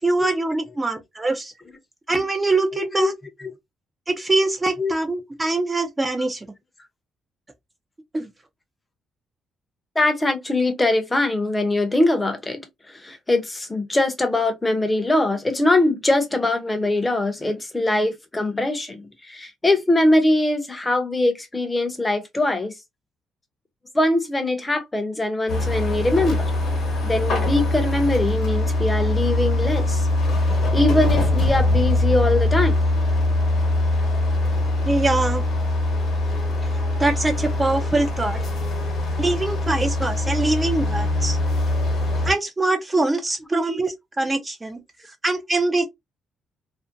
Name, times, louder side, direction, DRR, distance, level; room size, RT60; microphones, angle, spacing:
voice 1, 0.0-1.5 2.1-3.1 4.1-6.5 8.1-8.3 34.9-35.4 37.0-38.4 39.2-41.4 42.2-44.8 45.2-45.9, right 2 dB, 20° right, 0.4 m, -23 dB
voice 2, 2.7-3.1 4.8-4.9 10.0-12.6 12.9-22.7 23.9-26.5 27.0-30.1 30.7-32.8, left 2 dB, 15° left, 0.7 m, -22 dB
sound 1, 25.5-42.3, left 2 dB, 60° left, 1.0 m, -22 dB
2.5 x 2.1 x 2.5 m
cardioid pair, 90°, 0 cm